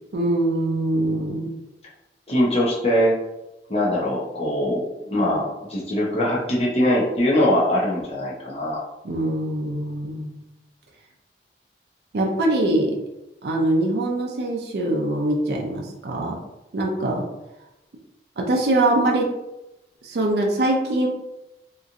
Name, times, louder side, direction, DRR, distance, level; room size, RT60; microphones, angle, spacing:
voice 1, 0.1-1.5 9.0-10.4 12.1-13.0 13.4-16.4 16.7-17.3 18.4-19.3 20.0-21.1, right 1 dB, 65° right, 0 dB, 0.5 m, -23 dB
voice 2, 2.3-3.1 3.7-8.8, equal, 35° left, -5 dB, 0.8 m, -22 dB
2.9 x 2.4 x 2.5 m, 0.94 s
head